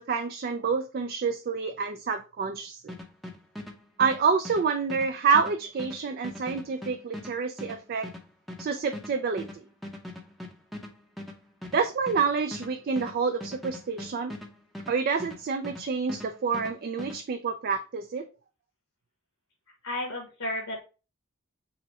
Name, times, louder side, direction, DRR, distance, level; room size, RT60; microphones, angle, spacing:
voice 1, 0.0-3.0 4.0-8.1 8.6-9.6 11.7-14.4 14.9-18.3, right 5 dB, 45° right, 7 dB, 0.3 m, -28 dB
sound 1, 2.9-15.8 16.1-17.2, left 1 dB, ahead, 0.6 m, -41 dB
voice 2, 19.8-20.8, left 1 dB, 90° left, 0 dB, 1.3 m, -32 dB
6.1 x 2.1 x 4.1 m, 0.32 s
head